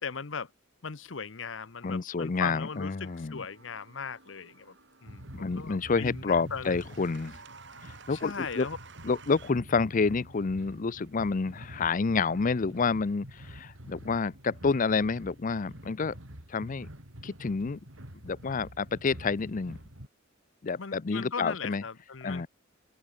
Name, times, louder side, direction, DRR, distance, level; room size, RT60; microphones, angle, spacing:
voice 1, 0.0-0.5 0.8-4.7 5.0-6.8 8.1-8.8 20.7-22.4, left 5 dB, 70° left, 1.0 m, -38 dB
voice 2, 1.8-3.4 5.3-7.4 8.1-8.7 9.0-16.1 16.5-16.9 17.2-17.8 18.2-19.8 20.6-21.8 22.2-22.5, left 4 dB, 40° left, 0.5 m, -29 dB
sound 1, 2.7-9.5, right 5 dB, 65° right, 7.9 m, -54 dB
sound 2, 5.1-20.1, equal, 90° right, 5.7 m, -47 dB
open air
head